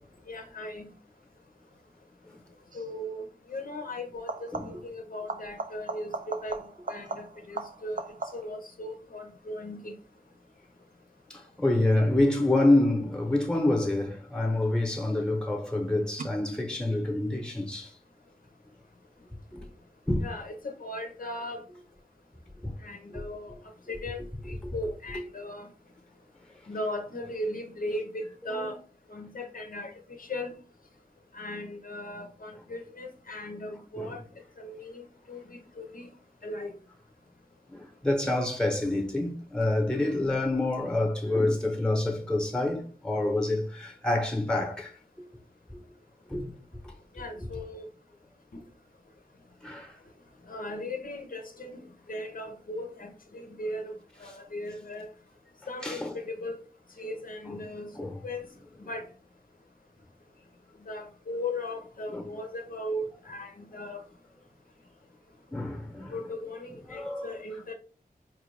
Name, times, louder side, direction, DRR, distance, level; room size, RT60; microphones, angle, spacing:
voice 1, 0.3-0.9 2.7-6.6 6.9-8.0 8.3-10.0 20.2-21.6 22.8-23.5 23.9-24.2 24.7-25.7 26.7-28.8 29.1-29.9 30.3-30.5 31.3-34.2 34.6-36.1 36.4-36.7 47.2-47.9 48.5-48.6 50.5-51.8 52.1-55.1 55.7-56.5 57.0-57.9 58.2-58.4 58.9-59.0 60.9-64.0 66.1-67.7, left 1 dB, 65° left, 0.7 m, -37 dB
sound 1, 2.7-3.0 4.1-4.9 5.3-8.7 14.1-14.7 16.2-16.3, right 4 dB, 60° right, 0.5 m, -38 dB
voice 2, 11.3-17.9 19.5-19.7 20.1-20.2 22.6-22.7 23.1-23.2 24.6-24.7 28.6-28.7 34.0-34.1 37.7-44.9 46.3-46.5 46.8-46.9 49.6-49.9 55.8-56.1 58.0-58.1 62.1-62.2 65.5-66.1 66.9-67.3, left 2 dB, 5° left, 0.9 m, -27 dB
4.5 x 2.4 x 3.2 m
wide cardioid pair, 75°, 16 cm